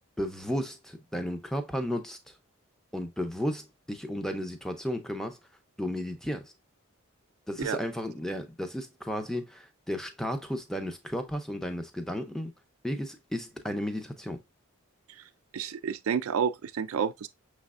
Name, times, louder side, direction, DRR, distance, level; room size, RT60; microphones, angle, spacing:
voice 1, 0.2-2.3 2.9-5.4 5.8-6.5 7.5-12.5 12.8-14.4, equal, ahead, 0.5 m, -33 dB
voice 2, 15.5-17.3, right 7 dB, 70° right, 0.4 m, -30 dB
6.1 x 3.2 x 2.3 m
head